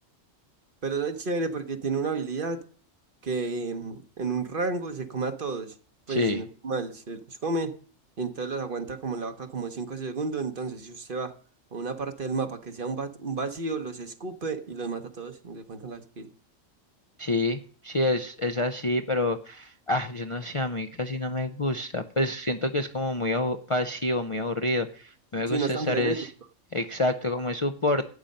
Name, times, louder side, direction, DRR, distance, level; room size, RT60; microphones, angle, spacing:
voice 1, 0.8-2.6 3.2-5.8 6.1-7.7 8.2-11.3 11.7-16.3 25.3-26.2, right 4 dB, 45° right, 8 dB, 1.1 m, -31 dB
voice 2, 6.1-6.4 17.2-26.3 26.7-28.0, left 2 dB, 35° left, 5 dB, 0.5 m, -28 dB
12.0 x 8.9 x 5.3 m, 0.42 s
omnidirectional pair, 1.4 m